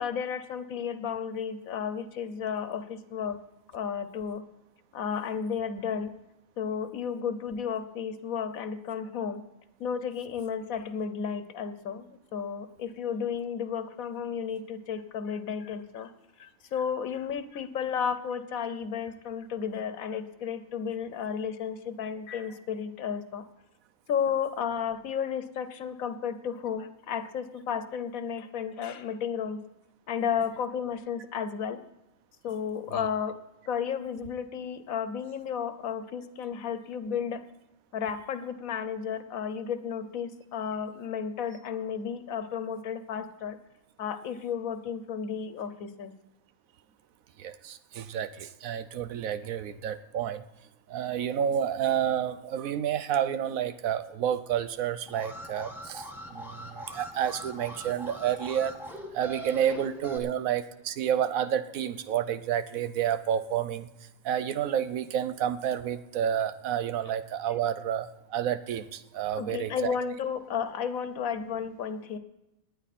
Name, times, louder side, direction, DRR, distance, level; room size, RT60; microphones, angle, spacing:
voice 1, 0.0-3.4 3.7-4.4 4.9-6.1 6.6-9.4 9.8-16.1 16.4-23.4 24.1-29.6 30.1-31.8 32.4-33.4 33.7-37.4 37.9-43.6 44.0-46.1 69.4-72.2, left 7 dB, 90° left, 11 dB, 1.3 m, -33 dB
voice 2, 47.4-50.4 50.9-58.7 59.1-69.9, right 9 dB, 85° right, 12 dB, 1.2 m, -30 dB
Alarm, 55.1-60.2, equal, ahead, 1.4 m, -41 dB
19.0 x 9.5 x 4.2 m, 0.95 s
omnidirectional pair, 1.4 m